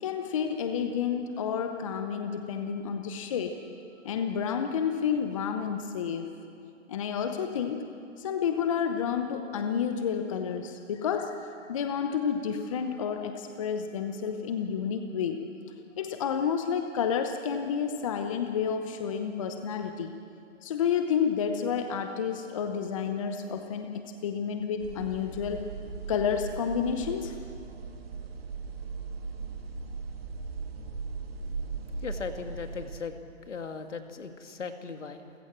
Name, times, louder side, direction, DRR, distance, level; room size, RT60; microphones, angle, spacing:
voice 1, 0.0-3.5 4.0-6.3 6.9-7.8 8.2-15.4 16.0-20.1 20.6-23.9 24.2-25.6 26.1-27.4, left 7 dB, 25° left, 7 dB, 0.9 m, -30 dB
sound 1, 24.8-33.0, right 4 dB, 50° right, 2.4 m, -38 dB
voice 2, 32.0-33.1 33.5-35.3, left 5 dB, 70° left, 6 dB, 2.3 m, -38 dB
28.5 x 16.0 x 7.4 m, 2.6 s
hypercardioid pair, 150°, 38 cm